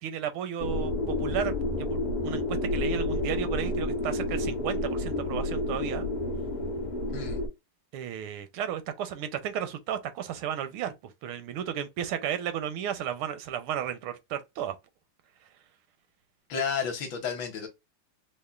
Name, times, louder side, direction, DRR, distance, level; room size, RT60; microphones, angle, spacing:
voice 1, 0.0-6.1 7.9-10.9 11.2-14.8, right 9 dB, 80° right, 1.4 m, -33 dB
sound 1, 0.6-7.5, left 1 dB, 40° left, 0.5 m, -30 dB
voice 2, 16.5-17.7, left 6 dB, 70° left, 1.4 m, -31 dB
5.3 x 2.1 x 2.3 m
omnidirectional pair, 2.4 m